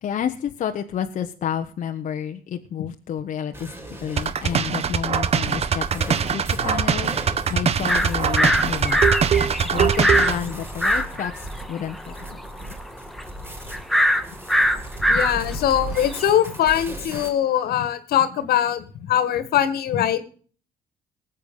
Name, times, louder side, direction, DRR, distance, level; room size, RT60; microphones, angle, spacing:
voice 1, 0.0-3.7 4.0-9.2 9.5-12.4, left 9 dB, 55° left, 5 dB, 1.2 m, -30 dB
sound 1, 3.5-17.3, right 1 dB, 15° right, 5.0 m, -36 dB
sound 2, 4.2-10.4, right 7 dB, 40° right, 1.1 m, -22 dB
sound 3, 7.9-16.7, equal, ahead, 1.7 m, -23 dB
voice 2, 15.1-20.2, left 10 dB, 75° left, 13 dB, 1.9 m, -22 dB
19.5 x 8.4 x 5.6 m, 0.43 s
cardioid pair, 120°, 16 cm